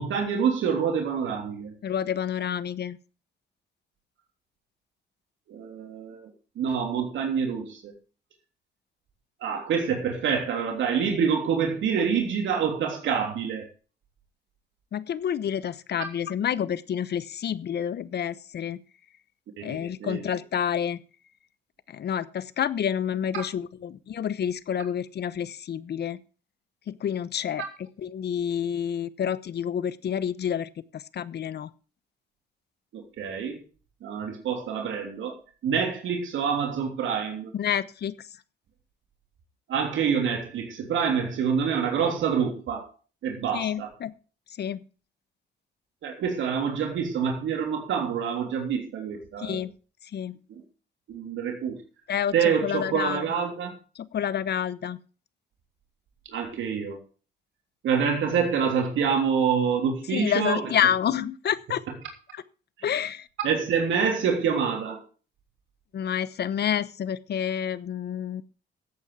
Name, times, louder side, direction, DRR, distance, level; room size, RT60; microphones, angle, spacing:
voice 1, 0.0-1.7 5.5-6.3 6.5-7.9 9.4-13.7 19.6-20.4 32.9-33.6 34.0-35.4 35.6-37.5 39.7-42.9 43.2-43.9 46.0-49.6 51.1-51.8 52.3-53.7 56.3-57.0 57.8-60.7 61.9-62.0 62.8-62.9 63.4-65.0, right 6 dB, 75° right, 3 dB, 3.2 m, -26 dB
voice 2, 1.8-3.0 14.9-18.8 19.6-21.0 21.9-26.2 26.9-27.6 28.0-31.7 37.5-38.1 43.5-44.1 44.6-44.8 49.4-49.7 50.1-50.4 52.1-52.3 52.6-53.3 54.1-55.0 60.1-61.8 62.3-62.4 62.8-63.3 65.9-68.4, left 9 dB, 55° left, 17 dB, 1.0 m, -28 dB
14.5 x 8.5 x 4.8 m, 0.36 s
cardioid pair, 90°, 20 cm